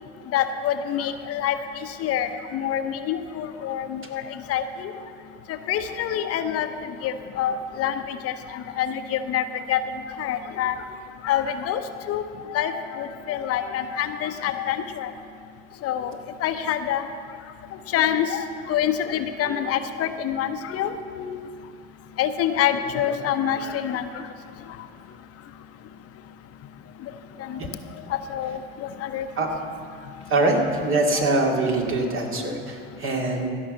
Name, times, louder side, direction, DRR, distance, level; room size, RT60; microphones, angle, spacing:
voice 1, 0.3-1.6 2.0-4.9 5.5-6.7 7.0-9.8 10.2-10.8 11.2-11.8 12.1-12.2 12.5-15.1 15.8-16.2 16.4-17.0 17.9-21.4 22.2-24.2 27.4-27.6 28.1-28.6 29.0-29.3, left 10 dB, 50° left, 8 dB, 0.8 m, -26 dB
voice 2, 30.3-33.5, right 2 dB, 45° right, 1 dB, 2.3 m, -23 dB
15.5 x 5.5 x 7.6 m, 2.6 s
hypercardioid pair, 70°, 30 cm